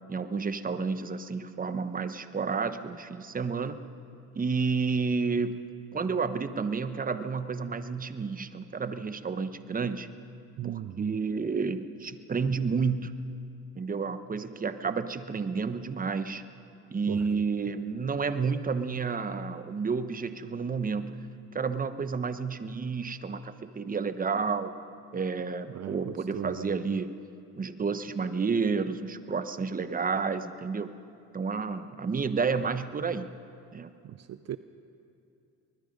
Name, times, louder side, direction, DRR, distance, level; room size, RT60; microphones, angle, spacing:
voice 1, 0.1-3.8 4.3-5.6 5.9-10.1 10.6-13.3 13.8-16.4 16.9-21.2 21.5-24.7 25.1-27.1 27.6-30.9 31.3-33.3 33.7-33.9, right 5 dB, 30° right, 11 dB, 1.0 m, -30 dB
voice 2, 10.6-11.1 17.1-17.2 25.7-26.7 34.0-34.6, right 11 dB, 55° right, 12 dB, 0.6 m, -37 dB
24.0 x 20.5 x 5.4 m, 2.7 s
cardioid pair, 90°, 30 cm